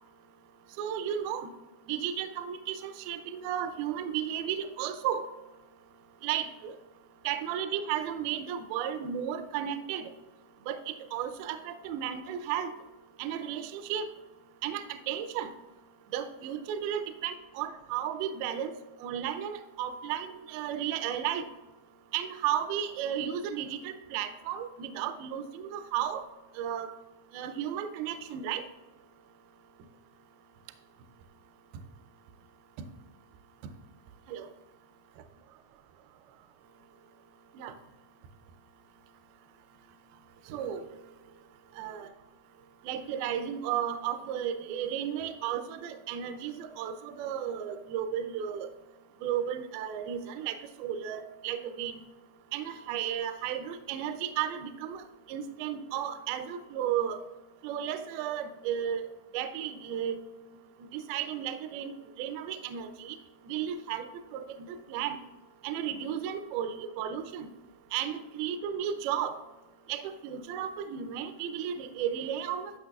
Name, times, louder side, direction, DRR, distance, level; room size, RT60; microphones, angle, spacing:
voice 1, 0.8-1.5 1.9-5.2 6.2-6.8 7.2-10.1 10.7-12.7 13.2-14.1 14.6-15.5 16.1-18.8 19.0-21.5 22.1-26.2 26.6-26.9 27.3-28.7 34.3-34.5 37.6-37.7 40.5-40.9 41.8-42.1 42.8-48.7 49.2-52.0 52.5-55.0 55.3-57.2 57.6-59.1 59.3-60.2 60.9-63.2 63.5-65.2 65.6-67.5 67.9-69.4 69.9-72.7, right 9 dB, 85° right, 9 dB, 2.2 m, -34 dB
12.0 x 6.0 x 2.3 m, 1.1 s
omnidirectional pair, 4.8 m